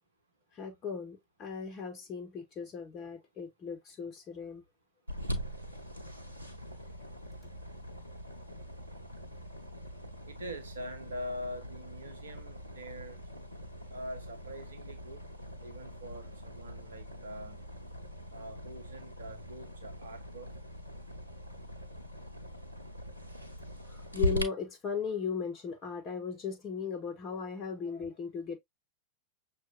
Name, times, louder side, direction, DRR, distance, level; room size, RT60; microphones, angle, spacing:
voice 1, 0.6-4.6 23.8-28.6, left 6 dB, 30° left, 1.2 m, -37 dB
sound 1, 5.1-24.4, equal, 85° left, 0.7 m, -41 dB
voice 2, 10.2-13.2 13.9-15.2 15.6-17.6 18.3-20.5, equal, 70° right, 0.9 m, -43 dB
6.1 x 2.5 x 2.5 m
figure-of-eight pair, 90°, 0 cm